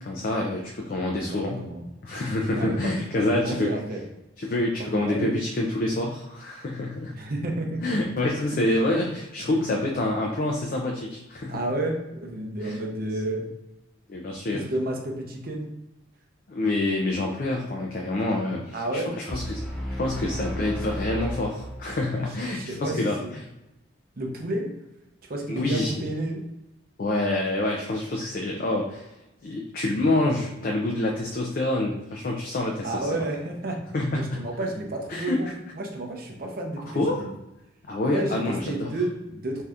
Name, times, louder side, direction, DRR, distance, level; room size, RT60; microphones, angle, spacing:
voice 1, 0.0-1.7 2.0-3.7 4.4-7.1 7.8-11.6 12.6-12.8 14.1-14.7 16.5-19.6 19.9-23.5 25.5-25.9 27.0-29.1 29.4-33.1 33.9-34.4 35.1-35.5 36.9-37.3 37.9-38.9, left 2 dB, 45° left, 0 dB, 0.3 m, -27 dB
voice 2, 1.1-1.8 2.5-2.9 3.3-4.0 4.9-5.3 7.2-8.1 9.4-9.5 11.5-13.4 14.5-15.7 18.7-19.1 22.5-23.0 24.2-24.7 25.2-26.4 32.8-33.8 34.1-36.9 37.2-37.3 38.1-39.6, right 1 dB, 45° right, 1 dB, 0.6 m, -31 dB
sound 1, 19.3-22.3, equal, 5° left, 0.7 m, -33 dB
2.7 x 2.3 x 3.4 m, 0.93 s
head